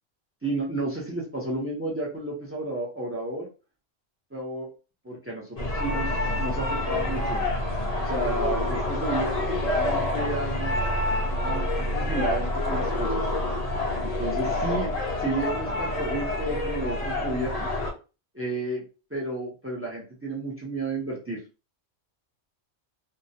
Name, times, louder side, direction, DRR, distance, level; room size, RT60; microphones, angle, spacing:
voice 1, 0.4-3.5 4.3-4.7 5.0-7.5 8.0-10.8 11.4-13.2 14.0-17.7 18.3-18.8 19.1-21.4, right 2 dB, 20° right, -2 dB, 0.4 m, -32 dB
sound 1, 5.6-17.9, left 2 dB, 65° left, 0.3 m, -27 dB
2.2 x 2.1 x 2.7 m, 0.32 s
omnidirectional pair, 1.3 m